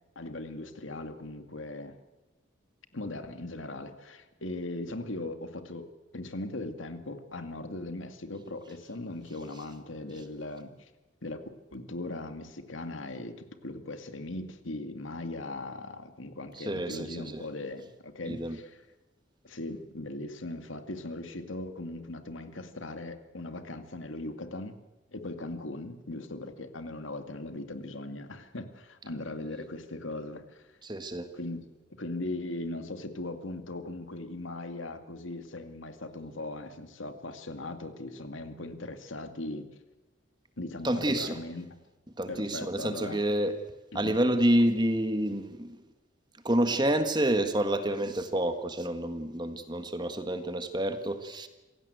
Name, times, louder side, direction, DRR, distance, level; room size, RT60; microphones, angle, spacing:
voice 1, 0.2-2.0 2.9-5.8 6.1-10.9 11.2-11.4 11.7-18.6 19.4-24.8 25.1-30.7 31.3-31.6 31.9-39.7 40.6-41.7 42.3-43.2 43.9-44.1, left 2 dB, 85° left, 8 dB, 2.2 m, -39 dB
voice 2, 16.5-17.4 18.2-18.6 30.8-31.3 40.8-41.4 42.2-43.6 43.9-45.8 46.4-51.5, right 1 dB, 20° right, 8 dB, 1.7 m, -28 dB
26.5 x 16.5 x 8.0 m, 1.1 s
head